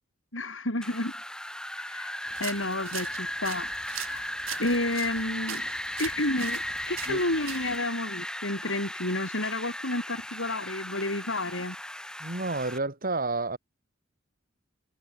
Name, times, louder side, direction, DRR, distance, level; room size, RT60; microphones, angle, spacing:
voice 1, 0.3-1.1 1.7-2.1 2.4-3.7 4.0-4.2 4.6-5.7 6.0-11.8, left 2 dB, 70° left, 7.8 m, -30 dB
Wind, 0.8-12.8, left 1 dB, 5° left, 2.3 m, -36 dB
sound 1, 2.3-7.8, right 9 dB, 90° right, 4.3 m, -41 dB
voice 2, 12.2-13.6, right 3 dB, 45° right, 4.0 m, -30 dB
head